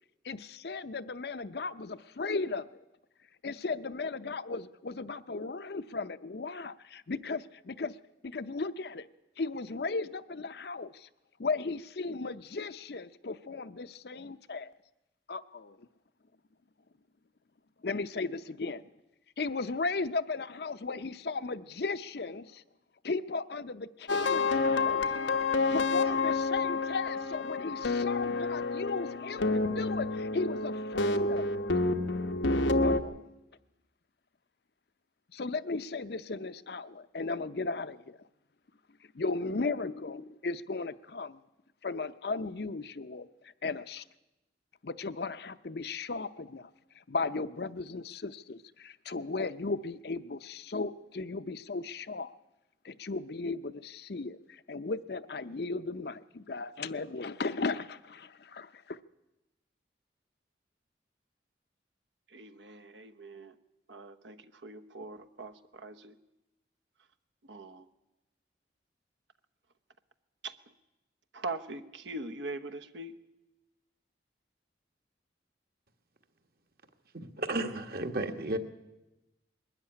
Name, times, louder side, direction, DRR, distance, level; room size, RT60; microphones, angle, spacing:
voice 1, 0.2-2.8 3.4-8.0 8.2-9.1 9.4-11.1 11.4-14.7 15.3-15.9 17.8-18.8 19.4-22.6 23.0-25.0 25.7-31.5 32.8-33.3 35.3-38.2 39.1-41.4 41.8-44.0 44.8-52.4 52.8-59.0, left 3 dB, 60° left, 12 dB, 0.6 m, -36 dB
sound 1, 24.1-33.0, left 3 dB, 90° left, 1.1 m, -29 dB
voice 2, 62.3-63.6 63.9-66.2 67.4-67.9 70.4-70.5 71.3-73.2, right 2 dB, 80° right, 11 dB, 1.1 m, -42 dB
voice 3, 77.1-78.6, right 2 dB, 55° right, 7 dB, 1.5 m, -33 dB
21.0 x 13.0 x 9.8 m, 0.97 s
head